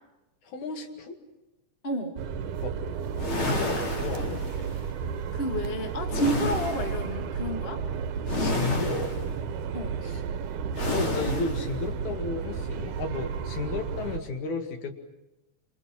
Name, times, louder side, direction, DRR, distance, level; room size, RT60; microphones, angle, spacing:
voice 1, 0.4-1.2 2.6-2.8 3.3-4.4 6.3-6.4 8.4-9.2 10.0-10.2 10.9-14.9, left 3 dB, 75° left, 5 dB, 3.6 m, -33 dB
voice 2, 1.8-2.2 5.3-7.8 9.7-10.0, right 1 dB, 20° left, 3 dB, 2.0 m, -30 dB
sound 1, 2.2-14.2, right 6 dB, 90° right, 2.7 m, -33 dB
sound 2, 3.2-4.8 6.1-7.0 8.3-9.3 10.8-11.7, left 3 dB, 45° left, 4.1 m, -30 dB
28.0 x 27.0 x 5.9 m, 1.0 s
omnidirectional pair, 3.4 m